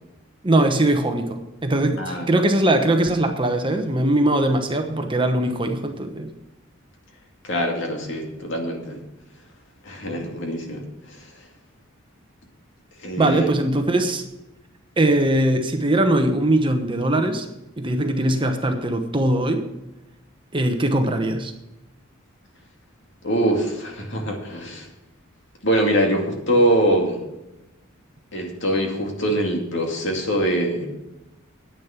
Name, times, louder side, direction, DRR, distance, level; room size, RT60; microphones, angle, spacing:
voice 1, 0.4-6.3 13.2-14.2 15.0-17.5 17.8-19.7 20.5-21.5, right 1 dB, 25° right, 5 dB, 1.0 m, -21 dB
voice 2, 2.0-2.3 7.4-9.0 9.8-11.3 13.0-13.5 23.2-24.9 25.6-27.2 28.3-30.9, right 1 dB, 60° left, 2 dB, 2.4 m, -23 dB
10.0 x 9.2 x 5.8 m, 0.94 s
head